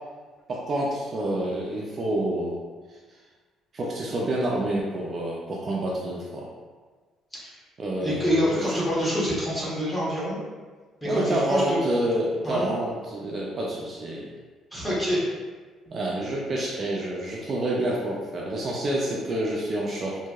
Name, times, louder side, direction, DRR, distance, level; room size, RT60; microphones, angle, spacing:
voice 1, 0.5-2.6 2.9-3.2 3.7-6.5 7.8-8.8 11.0-14.3 15.9-20.3, right 1 dB, 35° right, -4 dB, 0.3 m, -28 dB
voice 2, 8.0-10.4 11.0-11.8 12.4-12.7 14.7-15.2, equal, 10° left, -8 dB, 0.9 m, -26 dB
2.9 x 2.6 x 2.3 m, 1.4 s
cardioid pair, 150°, 0 cm